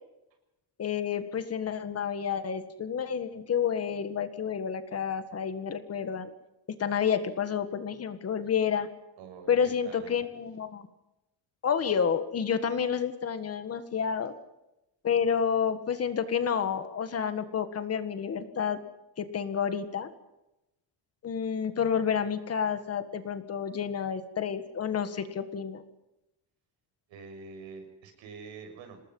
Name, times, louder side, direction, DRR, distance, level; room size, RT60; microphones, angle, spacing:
voice 1, 0.8-6.3 6.8-8.9 9.5-10.9 11.6-14.3 15.0-18.8 19.2-20.1 21.2-25.8, left 7 dB, 35° left, 10 dB, 1.7 m, -29 dB
voice 2, 9.2-10.2 27.1-29.0, right 4 dB, 90° right, 5 dB, 6.6 m, -46 dB
27.5 x 19.5 x 5.6 m, 0.92 s
cardioid pair, 175°, 45 cm